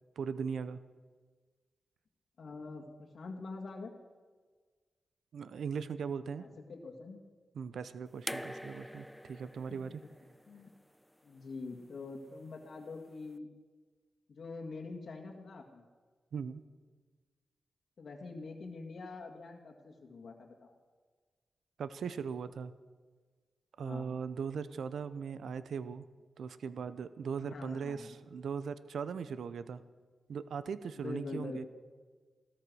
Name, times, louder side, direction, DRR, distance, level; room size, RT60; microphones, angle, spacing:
voice 1, 0.2-0.8 5.3-6.5 7.5-10.0 16.3-16.6 21.8-22.7 23.8-26.0 26.4-29.8 30.3-31.6, right 6 dB, 85° right, 14 dB, 0.7 m, -39 dB
voice 2, 2.4-3.9 6.4-7.2 9.8-9.9 10.5-10.7 11.2-13.5 14.3-15.9 18.0-20.7 23.8-24.2 27.4-28.2 31.0-31.7, left 3 dB, 70° left, 1 dB, 1.9 m, -45 dB
sound 1, 8.3-11.4 12.6-12.7, equal, 5° left, 0.4 m, -45 dB
16.5 x 13.5 x 6.3 m, 1.5 s
cardioid pair, 75°, 0 cm